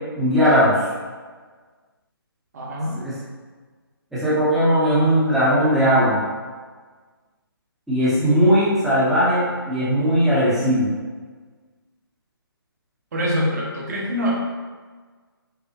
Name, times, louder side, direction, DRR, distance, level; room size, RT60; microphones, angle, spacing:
voice 1, 0.2-0.8 2.9-3.1 4.1-6.2 7.9-10.9, equal, ahead, -11 dB, 0.8 m, -18 dB
voice 2, 2.5-3.0 7.9-8.3 13.1-14.3, equal, 45° right, -3 dB, 1.0 m, -25 dB
5.6 x 2.0 x 2.8 m, 1.5 s
hypercardioid pair, 155°, 13 cm